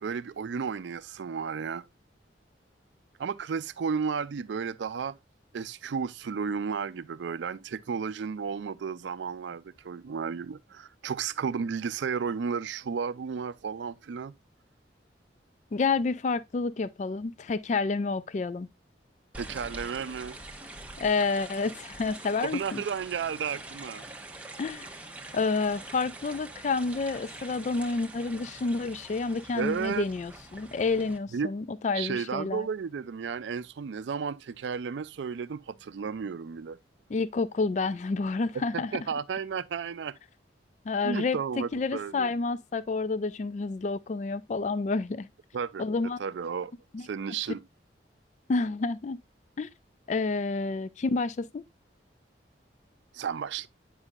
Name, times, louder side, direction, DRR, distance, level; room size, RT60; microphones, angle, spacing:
voice 1, 0.0-1.9 3.2-5.2 5.5-14.3 19.4-20.4 22.4-24.0 29.5-30.0 31.3-31.5 31.9-36.8 38.7-40.2 41.0-42.3 45.5-45.8 46.2-46.7 47.0-47.6 53.1-53.7, right 6 dB, 80° right, 0.4 m, -33 dB
voice 2, 15.7-18.7 21.0-22.8 24.6-24.9 25.3-32.7 37.1-38.9 40.9-45.3 45.8-46.2 46.9-47.1 48.5-49.2 49.6-49.7 50.1-51.6, left 4 dB, 40° left, 0.3 m, -29 dB
sound 1, 19.3-31.2, right 2 dB, 10° right, 0.9 m, -45 dB
9.7 x 5.4 x 2.4 m
head